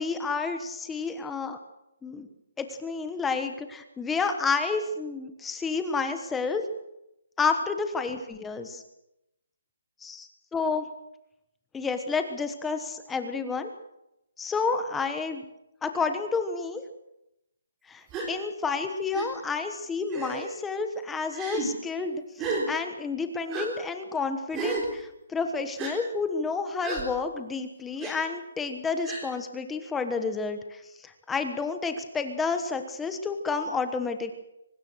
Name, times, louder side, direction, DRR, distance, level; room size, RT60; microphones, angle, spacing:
voice 1, 0.0-1.6 2.0-2.3 2.6-6.7 7.4-8.8 10.0-10.9 11.7-13.7 14.4-15.4 15.8-16.8 17.9-22.2 22.7-34.3, left 4 dB, 5° left, 7 dB, 1.2 m, -30 dB
Gasp, 18.1-18.3 19.1-19.3 20.1-20.5 21.3-21.7 22.4-22.7 23.5-23.7 24.5-24.9 25.8-25.9 26.8-27.0 28.0-28.1 29.0-29.3, right 4 dB, 10° right, 3.6 m, -31 dB
24.0 x 19.5 x 6.3 m, 0.84 s
hypercardioid pair, 175°, 0 cm